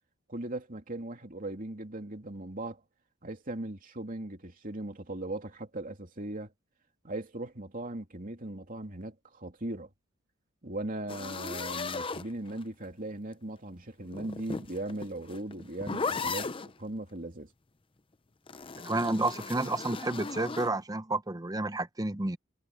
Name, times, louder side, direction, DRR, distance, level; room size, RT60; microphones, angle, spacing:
voice 1, 0.3-2.8 3.2-6.5 7.0-9.9 10.6-16.5 16.8-17.5, right 1 dB, 40° right, 2.9 m, -38 dB
sound 1, 11.1-12.8 14.0-16.7 18.5-20.7, left 4 dB, 25° left, 0.6 m, -37 dB
voice 2, 18.8-22.4, right 2 dB, 15° right, 0.7 m, -30 dB
head